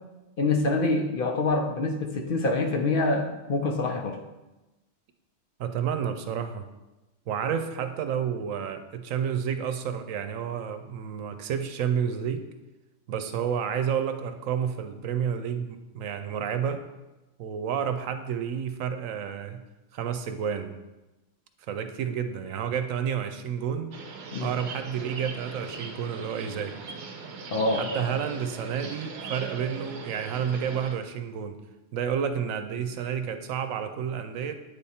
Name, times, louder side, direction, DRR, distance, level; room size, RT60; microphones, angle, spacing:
voice 1, 0.4-4.2 24.3-24.5 27.5-27.8, left 3 dB, 55° left, 4 dB, 0.7 m, -26 dB
voice 2, 5.6-6.6 7.3-12.4 13.1-16.8 17.4-19.6 19.9-20.8 21.6-24.0 24.4-26.8 27.7-31.6 31.9-34.5, right 8 dB, 90° right, 8 dB, 1.0 m, -30 dB
sound 1, 23.9-30.9, right 4 dB, 60° right, 0.9 m, -39 dB
8.8 x 3.6 x 4.2 m, 1.0 s
omnidirectional pair, 1.4 m